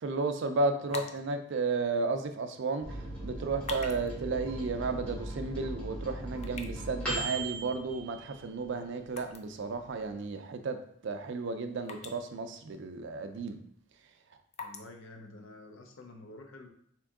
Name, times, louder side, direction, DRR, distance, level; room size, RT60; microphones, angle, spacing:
voice 1, 0.0-3.0 3.2-10.8 11.0-13.6, right 3 dB, 65° right, 8 dB, 0.4 m, -33 dB
sound 1, 0.7-16.1, left 4 dB, 35° left, 0.4 m, -50 dB
Microwave oven, 2.8-8.9 9.3-9.4 9.7-10.3, right 1 dB, 5° left, 1.3 m, -39 dB
voice 2, 14.6-16.7, left 2 dB, 90° left, 3 dB, 0.7 m, -49 dB
3.5 x 2.9 x 3.5 m, 0.65 s
head